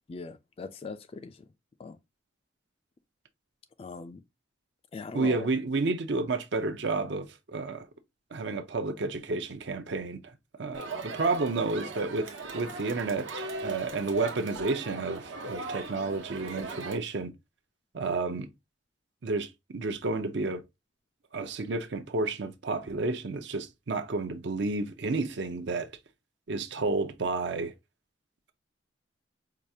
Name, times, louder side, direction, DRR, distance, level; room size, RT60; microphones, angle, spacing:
voice 1, 0.1-1.4 1.8-2.0 3.8-4.2 4.9-5.4, left 4 dB, 30° left, 0.3 m, -40 dB
voice 2, 5.1-7.9 8.3-10.3 10.6-17.3 17.9-18.5 19.2-20.6 21.3-25.9 26.5-27.7, right 3 dB, 65° right, 0.6 m, -31 dB
Crowd, 10.7-17.0, right 3 dB, 80° right, 0.9 m, -39 dB
4.7 x 2.3 x 2.7 m
head